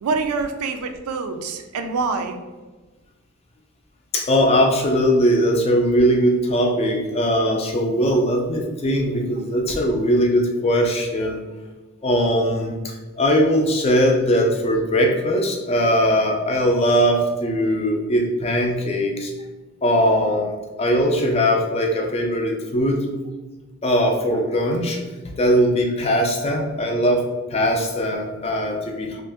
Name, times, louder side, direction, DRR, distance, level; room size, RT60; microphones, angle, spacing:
voice 1, 0.0-2.4, right 4 dB, 90° right, 7 dB, 0.4 m, -25 dB
voice 2, 4.1-11.4 12.0-19.3 19.8-23.1 23.8-29.2, equal, 30° left, 1 dB, 0.3 m, -20 dB
2.5 x 2.1 x 3.4 m, 1.3 s
head